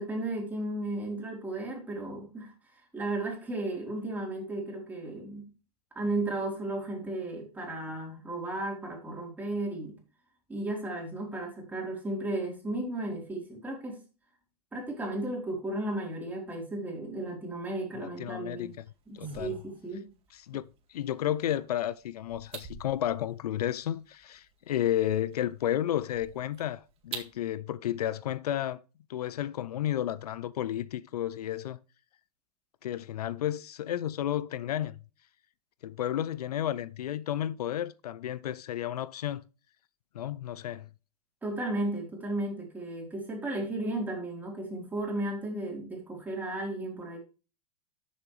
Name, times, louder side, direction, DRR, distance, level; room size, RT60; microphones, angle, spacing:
voice 1, 0.0-2.5 2.9-5.5 5.9-9.9 10.5-14.0 14.7-18.7 19.1-20.1 41.4-47.2, right 2 dB, 10° right, 3.9 m, -34 dB
voice 2, 17.9-18.7 19.1-19.6 20.3-28.8 29.1-31.8 32.8-34.9 35.8-39.4 40.1-40.9, left 11 dB, 80° left, 0.6 m, -32 dB
sound 1, 18.6-27.4, right 6 dB, 30° right, 2.1 m, -48 dB
13.0 x 7.2 x 3.3 m
hypercardioid pair, 130°, 19 cm